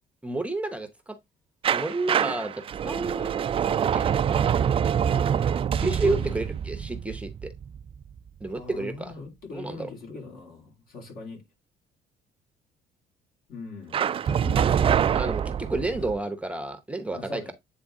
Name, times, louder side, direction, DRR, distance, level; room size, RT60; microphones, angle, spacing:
voice 1, 0.2-1.2 1.7-3.5 3.9-4.1 5.8-7.5 8.4-9.1 9.5-9.9 15.1-17.5, right 2 dB, 5° right, 0.8 m, -30 dB
sound 1, 1.6-8.4 13.9-16.2, right 8 dB, 35° right, 0.3 m, -25 dB
voice 2, 6.0-6.4 8.5-11.4 13.5-15.1 17.1-17.5, left 4 dB, 60° left, 2.9 m, -41 dB
8.6 x 3.4 x 3.6 m
cardioid pair, 110°, 17 cm